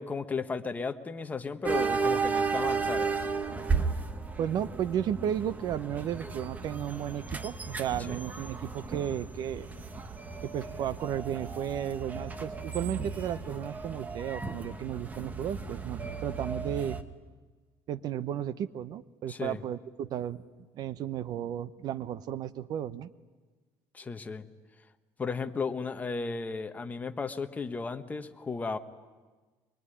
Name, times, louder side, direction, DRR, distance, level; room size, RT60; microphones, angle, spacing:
voice 1, 0.0-3.1 19.3-19.6 23.9-24.4 25.2-28.8, left 4 dB, 20° left, 8 dB, 1.3 m, -34 dB
sound 1, 1.6-17.0, right 4 dB, 20° right, 1.4 m, -34 dB
voice 2, 4.4-9.7 10.4-17.0 17.9-20.4 20.7-23.1, right 10 dB, 55° right, 15 dB, 0.8 m, -34 dB
24.0 x 23.0 x 9.9 m, 1.3 s
cardioid pair, 135°, 8 cm